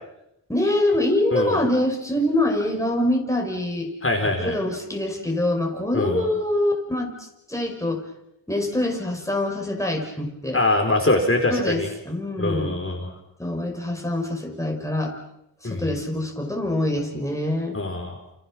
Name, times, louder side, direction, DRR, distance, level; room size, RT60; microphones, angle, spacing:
voice 1, 0.5-3.9 4.4-8.0 8.5-10.6 11.5-12.8 13.4-15.2 15.6-17.8, left 1 dB, 5° left, 1 dB, 5.7 m, -25 dB
voice 2, 1.3-1.6 4.0-4.6 5.9-6.3 10.5-11.9 12.4-13.1 15.6-15.9 17.7-18.2, left 2 dB, 30° left, 2 dB, 4.6 m, -23 dB
29.0 x 29.0 x 6.3 m, 0.84 s
wide cardioid pair, 70°, 42 cm